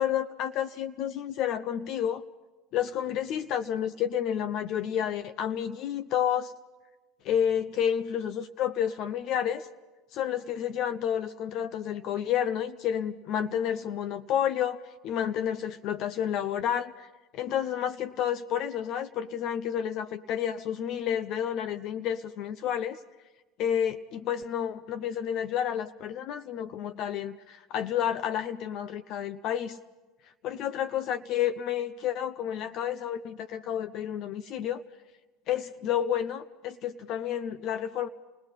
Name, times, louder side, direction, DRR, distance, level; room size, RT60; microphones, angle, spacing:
voice 1, 0.0-2.2 2.7-6.5 7.2-9.7 10.1-14.8 15.0-17.1 17.3-23.0 23.6-29.8 30.4-34.8 35.5-38.1, left 9 dB, 60° left, 11 dB, 0.6 m, -30 dB
30.0 x 18.5 x 5.7 m, 1.2 s
supercardioid pair, 90°, 0 cm